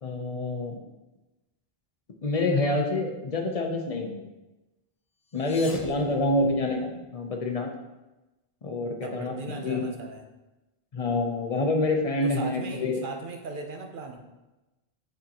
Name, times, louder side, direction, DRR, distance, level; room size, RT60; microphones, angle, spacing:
voice 1, 0.0-0.8 2.2-4.3 5.3-7.7 8.6-9.8 10.9-13.0, left 2 dB, 40° left, 3 dB, 0.7 m, -27 dB
sound 1, 5.2-7.1, left 4 dB, 65° left, 0.9 m, -45 dB
voice 2, 9.0-10.2 12.2-14.2, right 3 dB, 55° right, 4 dB, 0.9 m, -38 dB
6.3 x 5.7 x 2.9 m, 1.1 s
omnidirectional pair, 1.0 m